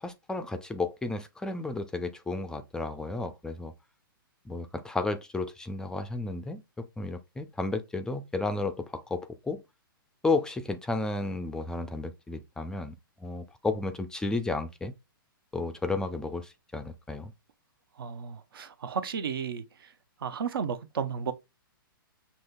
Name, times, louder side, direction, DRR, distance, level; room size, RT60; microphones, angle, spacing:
voice 1, 0.0-3.7 4.5-9.6 10.2-12.9 13.2-14.9 15.5-17.3, left 3 dB, 5° left, 0.3 m, -32 dB
voice 2, 18.0-19.9 20.2-21.3, right 6 dB, 75° right, 0.7 m, -33 dB
6.2 x 2.8 x 2.2 m
hypercardioid pair, 135°, 12 cm